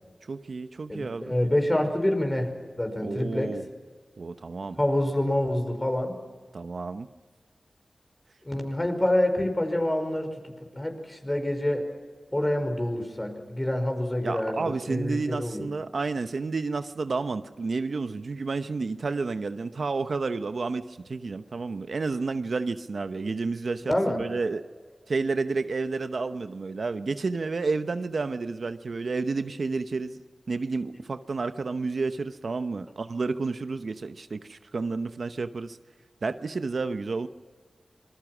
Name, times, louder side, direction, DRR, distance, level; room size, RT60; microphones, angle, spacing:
voice 1, 0.3-1.3 3.0-3.6 4.2-4.8 6.5-7.1 14.2-24.7 25.1-30.2 30.5-35.8 36.2-37.3, right 4 dB, 75° right, 10 dB, 0.9 m, -30 dB
voice 2, 0.9-2.5 2.8-3.6 4.8-6.1 8.4-11.9 12.3-15.7 23.9-24.2, left 1 dB, 25° left, 5 dB, 5.2 m, -27 dB
26.5 x 21.0 x 6.1 m, 1.5 s
cardioid pair, 45°, 0 cm